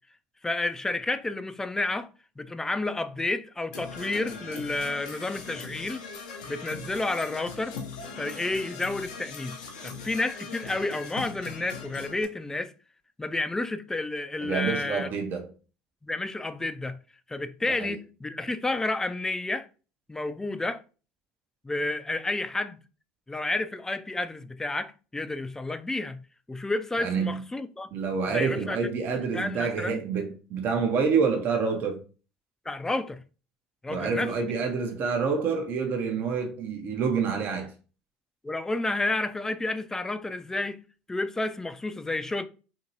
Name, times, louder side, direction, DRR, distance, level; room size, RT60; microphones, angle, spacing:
voice 1, 0.4-2.1 2.4-6.0 6.5-7.8 8.2-9.6 9.8-12.7 13.2-15.1 16.0-17.0 17.3-19.7 20.1-20.8 21.6-22.8 23.3-26.2 26.5-27.9 28.3-28.8 29.3-30.0 32.7-33.2 33.8-34.3 38.4-40.8 41.1-42.4, left 2 dB, 10° left, 0.3 m, -30 dB
Percussion / Brass instrument, 3.7-12.2, left 5 dB, 85° left, 0.6 m, -40 dB
voice 2, 14.4-15.5 17.8-18.0 27.0-27.4 27.9-32.0 33.9-37.7, right 5 dB, 50° right, 0.6 m, -27 dB
2.8 x 2.7 x 2.7 m
hypercardioid pair, 75°, 4 cm